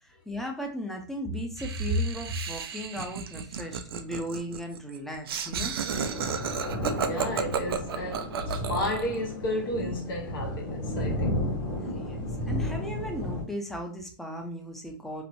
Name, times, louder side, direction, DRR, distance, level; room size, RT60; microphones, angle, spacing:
voice 1, 0.1-5.8 11.9-15.2, equal, ahead, 0.5 m, -35 dB
Laughter, 1.6-9.2, right 7 dB, 85° right, 0.4 m, -33 dB
sound 1, 5.9-13.4, left 1 dB, 40° left, 1.3 m, -33 dB
voice 2, 7.0-11.4, left 1 dB, 65° left, 1.0 m, -32 dB
3.1 x 2.0 x 2.6 m
hypercardioid pair, 130°, 12 cm